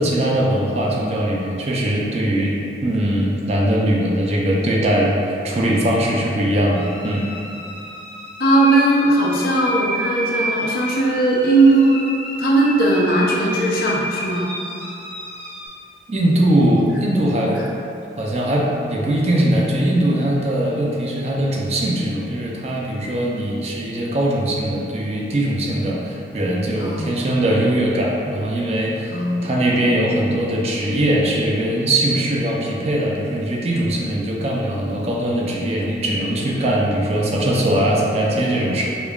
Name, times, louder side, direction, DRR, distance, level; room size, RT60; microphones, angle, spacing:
voice 1, 0.0-7.3 16.1-17.5 18.2-39.0, right 1 dB, 35° right, -3 dB, 0.4 m, -20 dB
sound 1, 6.8-15.7, equal, 30° left, 0.8 m, -31 dB
voice 2, 8.4-12.0 12.4-14.5 16.8-16.9 17.4-17.5 26.8-27.1 29.1-29.6, right 2 dB, 55° left, -4 dB, 0.5 m, -18 dB
5.0 x 2.3 x 2.3 m, 2.7 s
head